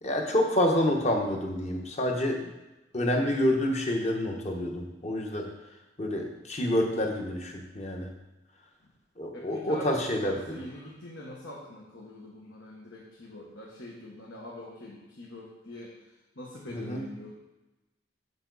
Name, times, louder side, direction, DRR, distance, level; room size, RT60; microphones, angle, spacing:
voice 1, 0.0-2.5 2.9-5.5 6.0-8.1 9.2-10.6 16.7-17.0, left 1 dB, 35° left, 1 dB, 1.2 m, -28 dB
voice 2, 9.3-17.3, left 1 dB, 75° left, -3 dB, 1.3 m, -44 dB
7.1 x 7.0 x 4.0 m, 1.1 s
head